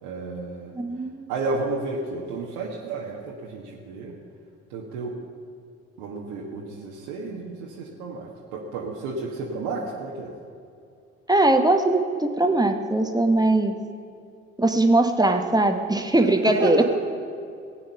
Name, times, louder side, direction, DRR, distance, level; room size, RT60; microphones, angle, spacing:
voice 1, 0.0-0.7 1.3-4.1 4.7-5.2 6.0-10.3 16.5-16.8, right 3 dB, 70° right, -3 dB, 1.4 m, -31 dB
voice 2, 0.7-1.3 11.3-13.7 14.6-16.8, right 2 dB, 10° right, 5 dB, 1.1 m, -20 dB
17.0 x 8.7 x 5.6 m, 2.4 s
figure-of-eight pair, 50°, 35 cm